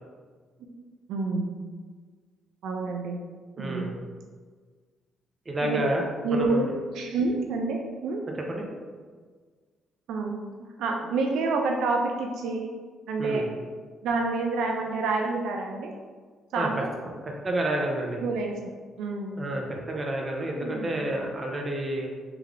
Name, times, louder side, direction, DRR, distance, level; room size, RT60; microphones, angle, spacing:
voice 1, 0.6-1.7 2.6-3.2 3.6-4.0 5.6-6.0 6.2-6.7 6.9-8.2 10.1-12.7 13.1-13.6 14.0-15.9 16.5-16.9 18.2-18.7 19.0-19.5 20.6-21.1, right 3 dB, 85° right, 2 dB, 0.4 m, -28 dB
voice 2, 3.6-3.9 5.5-6.0 6.3-6.7 8.5-8.6 13.2-13.4 16.6-16.7 17.4-18.2 19.4-22.1, right 1 dB, 30° right, 0 dB, 0.8 m, -29 dB
3.3 x 3.2 x 3.6 m, 1.5 s
cardioid pair, 90°, 0 cm